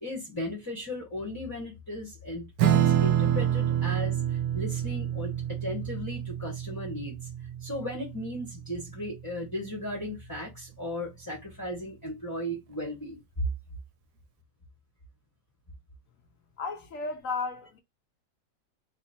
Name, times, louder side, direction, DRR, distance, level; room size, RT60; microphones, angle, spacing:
voice 1, 0.0-7.3 7.6-13.4, left 1 dB, 15° left, 0.7 m, -36 dB
Strum, 2.6-9.4, right 10 dB, 80° right, 1.2 m, -28 dB
voice 2, 16.6-17.8, left 4 dB, 65° left, 0.8 m, -34 dB
3.1 x 2.8 x 4.1 m
omnidirectional pair, 1.9 m